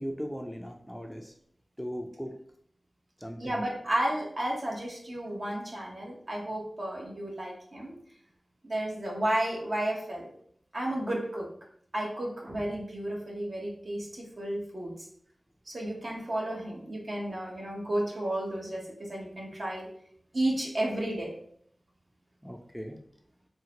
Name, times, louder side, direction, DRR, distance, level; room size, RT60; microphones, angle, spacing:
voice 1, 0.0-1.3 1.8-2.3 3.2-3.6 22.4-23.0, equal, ahead, 3 dB, 0.4 m, -38 dB
voice 2, 3.4-7.9 8.6-10.3 10.7-11.5 11.9-15.1 15.7-19.9 20.3-21.3, right 1 dB, 60° right, -2 dB, 0.9 m, -32 dB
3.7 x 2.1 x 2.8 m, 0.64 s
wide cardioid pair, 50°, 0 cm